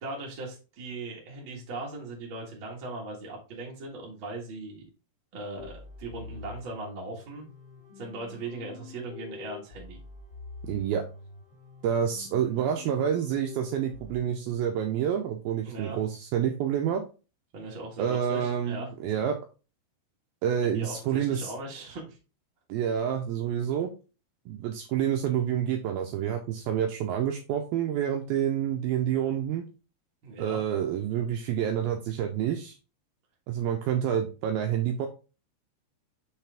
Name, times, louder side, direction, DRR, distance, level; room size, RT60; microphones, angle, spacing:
voice 1, 0.0-4.8 5.3-5.7 6.0-7.4 8.0-10.0 15.6-16.0 17.5-18.9 20.6-22.2 30.2-30.6, right 2 dB, 50° right, -2 dB, 1.4 m, -39 dB
sound 1, 5.6-14.2, left 5 dB, 30° left, 2.7 m, -46 dB
voice 2, 10.6-11.0 11.8-17.0 18.0-19.4 20.4-21.5 22.7-23.9 24.5-29.7 30.4-32.8 33.5-35.1, right 9 dB, 85° right, 4 dB, 2.1 m, -28 dB
6.4 x 5.7 x 3.5 m, 0.33 s
omnidirectional pair, 5.1 m